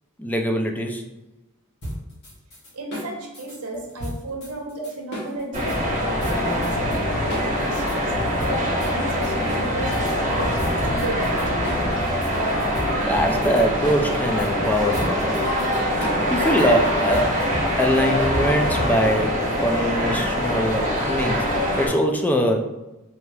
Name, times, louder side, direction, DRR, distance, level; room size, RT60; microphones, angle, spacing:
voice 1, 0.2-1.0 13.1-15.5 16.1-17.4 17.8-21.5 21.8-22.7, equal, 10° left, 3 dB, 0.3 m, -22 dB
sound 1, 1.8-5.8 6.2-7.0 7.3-10.2 10.6-19.3, equal, 55° left, 1.3 m, -33 dB
voice 2, 2.7-8.1 8.4-11.7, right 1 dB, 80° right, 1 dB, 0.9 m, -34 dB
sound 2, 5.5-21.9, equal, 35° right, 1.2 m, -23 dB
4.6 x 2.8 x 2.3 m, 1.0 s
head